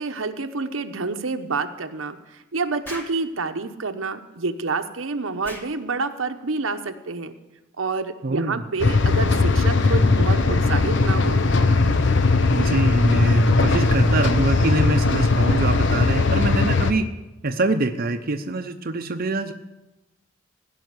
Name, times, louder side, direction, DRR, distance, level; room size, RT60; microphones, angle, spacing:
voice 1, 0.0-7.3 7.8-11.5, right 4 dB, 80° right, 7 dB, 0.9 m, -28 dB
Explosion, 2.8-3.2 5.4-5.7, left 1 dB, 10° left, 1.7 m, -37 dB
voice 2, 8.2-8.6 12.5-17.1 17.4-19.5, right 2 dB, 45° right, 5 dB, 0.7 m, -25 dB
sound 1, 8.8-16.9, left 3 dB, 60° left, 0.9 m, -19 dB
16.5 x 5.7 x 9.5 m, 1.0 s
head